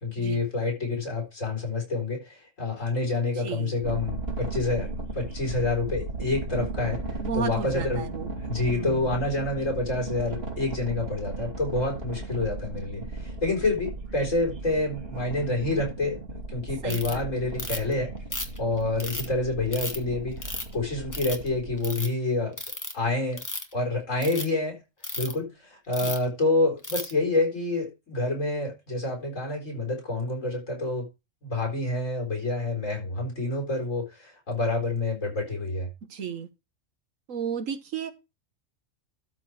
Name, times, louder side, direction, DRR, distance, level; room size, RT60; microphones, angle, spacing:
voice 1, 0.0-4.9 5.1-7.0 7.3-8.0 8.5-16.2 16.5-18.1 18.6-22.6 22.9-23.4 23.7-24.8 25.2-31.1 31.4-35.9, left 2 dB, 75° left, 4.3 m, -28 dB
voice 2, 3.4-3.7 7.2-8.3 8.7-9.0 16.8-17.2 26.0-26.1 36.1-36.5 37.3-38.1, right 6 dB, 80° right, 1.4 m, -33 dB
sound 1, 3.8-21.8, right 2 dB, 50° right, 2.9 m, -36 dB
Ratchet pawl, 16.9-17.1 17.6-17.9 18.3-19.3 19.7-20.0 20.4-20.7 21.1-21.5 21.8-22.1 22.6-22.9 23.3-23.7 24.2-24.4 25.0-25.3 25.9-26.2 26.8-27.1, left 1 dB, 15° left, 1.3 m, -33 dB
12.5 x 4.6 x 4.8 m
omnidirectional pair, 1.3 m